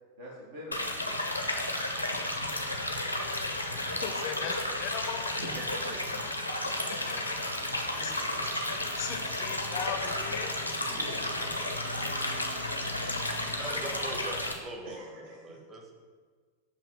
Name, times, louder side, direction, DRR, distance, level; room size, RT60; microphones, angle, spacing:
voice 1, 0.2-1.2 2.0-2.2 5.4-7.2 7.6-8.4 10.7-13.2 14.8-15.6, equal, 60° right, -4 dB, 1.0 m, -47 dB
sound 1, 0.7-14.5, left 1 dB, 85° left, 0.6 m, -32 dB
voice 2, 4.0-5.2 8.0-10.5, left 8 dB, 45° left, 7 dB, 0.5 m, -38 dB
voice 3, 13.6-16.0, right 1 dB, 20° right, 1 dB, 1.0 m, -41 dB
6.8 x 3.0 x 5.1 m, 1.6 s
figure-of-eight pair, 90°, 0 cm